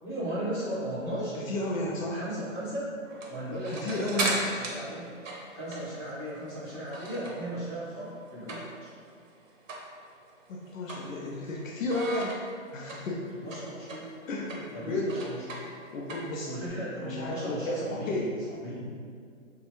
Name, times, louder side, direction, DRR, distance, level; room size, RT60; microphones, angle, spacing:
voice 1, 0.0-1.4 2.1-2.8 3.3-5.1 5.5-8.9 13.4-14.1 14.7-15.4 16.5-18.2 18.5-18.9, right 1 dB, 20° left, -15 dB, 1.4 m, -36 dB
voice 2, 1.4-2.2 3.7-4.4 10.5-12.4 12.7-13.3 14.3-15.1 15.9-16.5 17.0-18.4, left 1 dB, 75° left, -2 dB, 0.6 m, -33 dB
sound 1, 3.0-7.5 7.8-9.0 9.3-9.4 9.7-9.9 10.3-11.5 11.9-16.7, right 2 dB, 70° right, 0.7 m, -36 dB
3.0 x 2.3 x 2.9 m, 2.2 s
hypercardioid pair, 165°, 40 cm